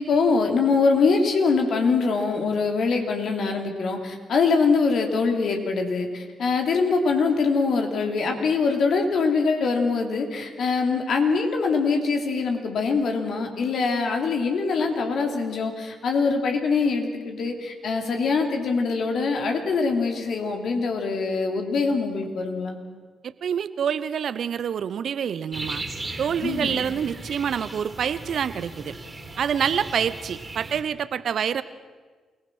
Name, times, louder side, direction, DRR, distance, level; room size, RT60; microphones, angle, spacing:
voice 1, 0.0-22.8 26.4-26.8, left 4 dB, 60° left, 3 dB, 3.1 m, -23 dB
voice 2, 23.2-25.8 26.2-28.9 29.4-31.6, right 8 dB, 60° right, 15 dB, 0.8 m, -27 dB
sound 1, 25.5-30.8, right 2 dB, 30° right, 3.4 m, -37 dB
28.0 x 18.5 x 6.2 m, 1.4 s
hypercardioid pair, 40°, 0 cm